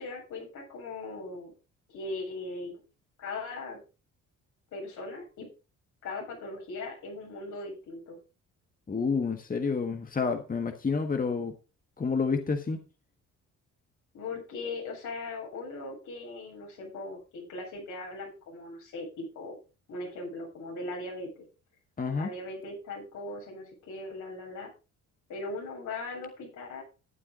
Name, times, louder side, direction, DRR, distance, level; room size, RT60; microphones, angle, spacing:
voice 1, 0.0-1.5 1.9-2.8 3.2-3.8 4.7-5.5 6.0-8.2 14.1-19.6 19.9-21.3 22.1-24.7 25.3-26.8, left 2 dB, 80° left, -1 dB, 7.6 m, -39 dB
voice 2, 8.9-11.5 12.0-12.8 22.0-22.3, left 5 dB, 30° left, 6 dB, 1.5 m, -29 dB
12.5 x 9.1 x 3.8 m, 0.31 s
cardioid pair, 90°, 30 cm